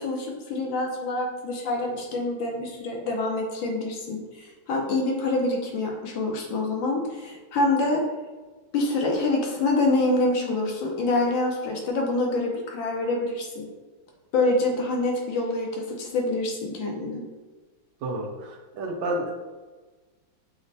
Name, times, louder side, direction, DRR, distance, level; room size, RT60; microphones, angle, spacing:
voice 1, 0.0-8.0 8.7-13.7 14.3-17.2, left 2 dB, 75° left, 0 dB, 1.3 m, -26 dB
voice 2, 18.0-19.3, right 1 dB, 80° right, 1 dB, 1.4 m, -30 dB
6.4 x 2.1 x 2.6 m, 1.3 s
omnidirectional pair, 2.2 m